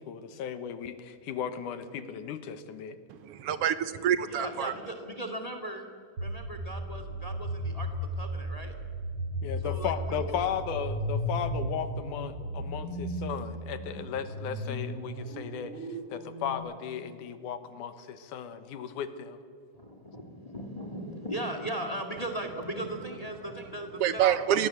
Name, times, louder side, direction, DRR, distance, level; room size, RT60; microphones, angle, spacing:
voice 1, 0.0-3.0 9.4-15.8 16.1-19.4, left 8 dB, 80° left, 11 dB, 2.7 m, -36 dB
voice 2, 3.1-4.7 24.0-24.7, right 10 dB, 65° right, 13 dB, 1.6 m, -27 dB
voice 3, 4.3-5.9 6.2-8.7 9.6-10.2 19.7-24.7, right 1 dB, 15° left, 6 dB, 1.8 m, -38 dB
sound 1, 6.2-16.5, equal, 45° right, 4.2 m, -35 dB
29.0 x 20.5 x 8.0 m, 2.2 s
omnidirectional pair, 3.6 m